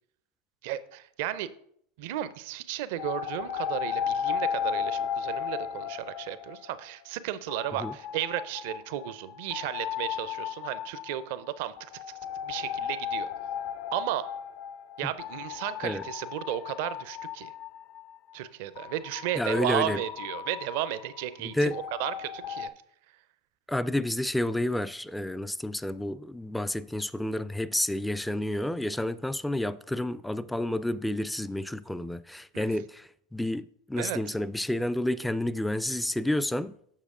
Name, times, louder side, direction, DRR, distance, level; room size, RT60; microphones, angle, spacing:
voice 1, 0.6-1.5 2.0-11.9 12.4-13.3 13.9-14.4 15.0-17.5 18.3-22.7 32.5-32.7 34.0-34.2, right 13 dB, 60° right, 0.5 m, -34 dB
sound 1, 3.0-7.1 7.5-18.1 18.8-22.7, left 8 dB, 60° left, 0.5 m, -35 dB
voice 2, 19.4-20.0 21.4-21.8 23.7-36.7, left 1 dB, 5° left, 0.3 m, -30 dB
7.3 x 6.3 x 3.7 m
hypercardioid pair, 90°, 0 cm